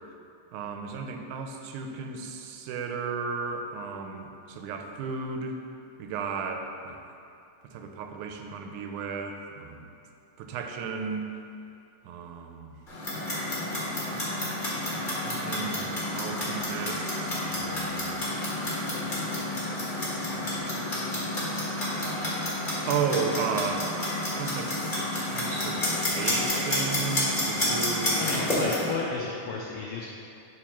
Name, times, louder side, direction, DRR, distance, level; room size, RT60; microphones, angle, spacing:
voice 1, 0.5-5.6 6.0-7.0 7.7-9.9 10.4-11.3 12.1-12.8 15.2-18.2 20.3-20.7 22.9-24.7 25.2-28.3, right 5 dB, 90° right, 4 dB, 2.0 m, -34 dB
Clock, 12.9-28.9, left 1 dB, 25° left, 1.1 m, -30 dB
voice 2, 28.2-30.1, left 4 dB, 90° left, -3 dB, 1.3 m, -33 dB
11.0 x 4.1 x 3.0 m, 2.6 s
omnidirectional pair, 3.4 m